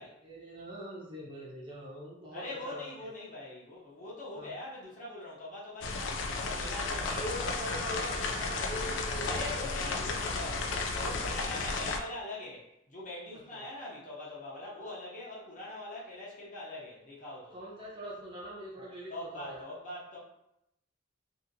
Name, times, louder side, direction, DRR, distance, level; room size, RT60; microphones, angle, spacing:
voice 1, 0.2-3.1 4.4-4.5 7.1-9.7 11.3-11.6 13.5-13.6 17.5-19.6, equal, 25° right, -5 dB, 0.6 m, -42 dB
voice 2, 2.3-7.7 9.3-17.6 18.8-20.2, left 2 dB, 40° left, -6 dB, 0.8 m, -43 dB
sound 1, 5.8-12.0, left 3 dB, 75° left, 0.3 m, -33 dB
2.7 x 2.6 x 2.6 m, 0.84 s
head